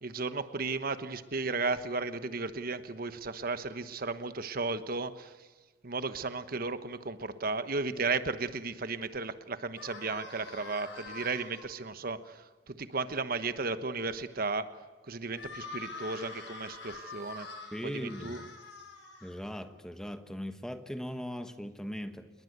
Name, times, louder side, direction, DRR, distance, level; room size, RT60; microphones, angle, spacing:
voice 1, 0.0-5.3 5.8-14.7 15.1-17.5 17.8-18.4, right 3 dB, 55° right, 11 dB, 1.1 m, -34 dB
sound 1, 9.8-11.6 15.3-19.6, left 3 dB, 70° left, 7.3 m, -45 dB
voice 2, 17.7-18.4 19.2-22.3, equal, 5° left, 8 dB, 1.2 m, -39 dB
28.5 x 20.5 x 8.1 m, 1.3 s
head